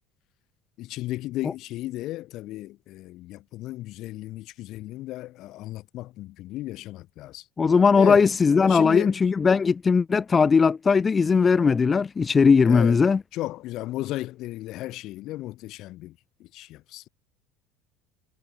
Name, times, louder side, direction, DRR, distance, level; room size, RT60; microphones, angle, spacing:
voice 1, 0.8-7.5 8.0-8.3 8.7-9.2 12.7-17.1, left 16 dB, 60° left, 3.7 m, -34 dB
voice 2, 7.6-13.2, left 5 dB, 25° left, 1.2 m, -19 dB
supercardioid pair, 115°, 0 cm